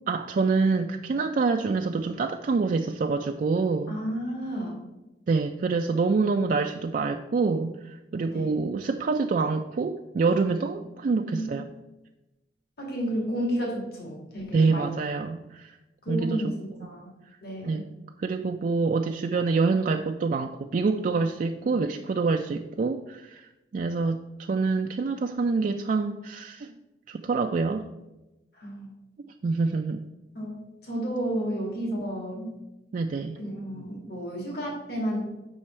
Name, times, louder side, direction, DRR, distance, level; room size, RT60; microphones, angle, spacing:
voice 1, 0.1-3.9 5.3-11.6 14.5-15.8 16.1-16.5 16.8-16.9 17.6-17.9 18.2-26.8 27.1-27.9 29.3-30.0 32.9-33.4, right 4 dB, 45° right, 4 dB, 0.3 m, -26 dB
voice 2, 3.9-4.8 8.3-8.6 11.2-11.6 12.8-14.9 16.0-17.1 17.4-17.8 28.5-28.9 30.3-30.5 30.8-32.5 33.4-35.2, equal, 60° left, -1 dB, 2.1 m, -32 dB
7.4 x 5.5 x 4.3 m, 1.0 s
head